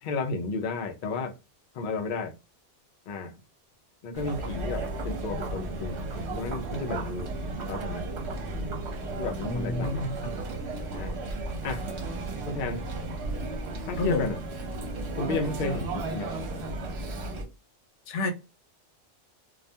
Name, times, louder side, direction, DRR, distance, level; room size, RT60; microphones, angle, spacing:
voice 1, 0.0-1.3 1.7-2.3 3.1-3.4 4.0-7.3 7.7-8.0 9.2-10.1 10.8-11.2 11.6-11.8 12.5-12.8 13.9-14.4 15.2-16.3, left 3 dB, 60° left, 0.5 m, -33 dB
Chatter, 4.1-17.4, right 2 dB, 70° right, 0.9 m, -34 dB
voice 2, 9.4-10.4 14.0-14.3 18.1-18.3, left 2 dB, 80° left, 0.9 m, -29 dB
2.3 x 2.2 x 2.6 m
omnidirectional pair, 1.2 m